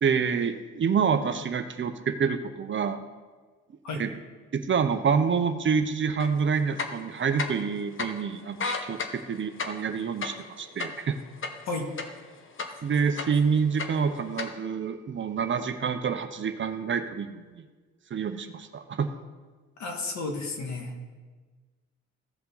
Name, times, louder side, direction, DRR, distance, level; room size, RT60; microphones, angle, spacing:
voice 1, 0.0-3.0 3.9-4.1 4.5-11.2 12.8-17.6 18.1-19.1, right 6 dB, 40° right, 8 dB, 0.8 m, -27 dB
sound 1, 6.2-6.3 6.7-7.7 8.0-8.1 8.5-12.2 12.6-13.4 13.7-14.5, left 4 dB, 40° left, 1.1 m, -33 dB
voice 2, 19.8-20.9, left 3 dB, 65° left, 2 dB, 1.9 m, -32 dB
15.5 x 5.6 x 3.9 m, 1.4 s
cardioid pair, 90°, 30 cm